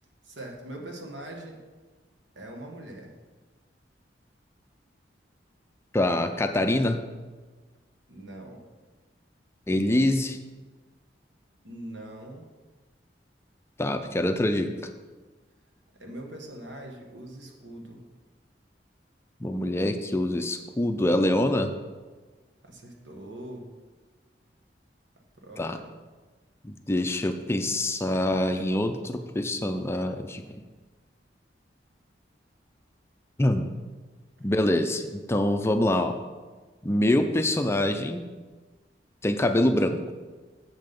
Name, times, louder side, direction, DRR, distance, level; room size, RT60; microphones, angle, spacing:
voice 1, 0.2-1.6 2.3-3.2 8.1-8.7 11.6-12.4 16.0-18.0 22.6-23.7 25.4-25.9 28.0-28.2 28.5-28.7 30.5-30.6, right 1 dB, 85° right, 1 dB, 1.4 m, -42 dB
voice 2, 5.9-7.1 9.7-10.4 13.8-14.7 19.4-21.7 25.6-25.8 26.6-30.5 33.4-33.7 34.4-36.2 36.8-38.2 39.2-40.1, left 1 dB, 15° left, 7 dB, 0.4 m, -25 dB
7.4 x 5.9 x 5.2 m, 1.3 s
head